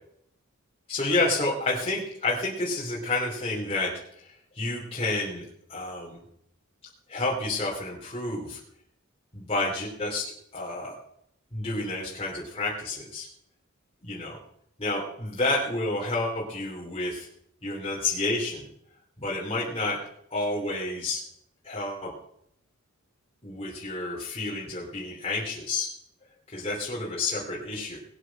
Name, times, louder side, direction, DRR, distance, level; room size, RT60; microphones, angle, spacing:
voice 1, 0.9-6.2 7.1-8.6 9.3-11.0 11.5-13.3 14.0-14.4 14.8-17.3 17.6-18.7 19.2-20.0 20.3-21.2 21.6-22.1 23.4-25.9 26.5-28.0, left 2 dB, 30° left, -4 dB, 2.9 m, -30 dB
19.5 x 8.2 x 5.8 m, 0.74 s
head